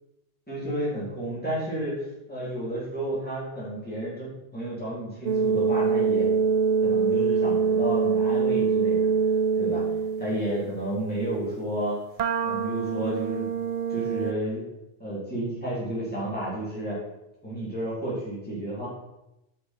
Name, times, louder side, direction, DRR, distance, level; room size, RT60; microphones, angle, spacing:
voice 1, 0.5-6.3 6.8-9.1 9.6-9.8 10.2-12.0 12.4-13.5 13.9-14.7 15.0-17.0 17.4-18.9, right 1 dB, 10° left, -8 dB, 3.6 m, -31 dB
sound 1, 5.3-10.5 12.2-14.3, right 5 dB, 55° right, 0.5 m, -24 dB
10.5 x 5.7 x 4.6 m, 0.91 s
omnidirectional pair, 1.0 m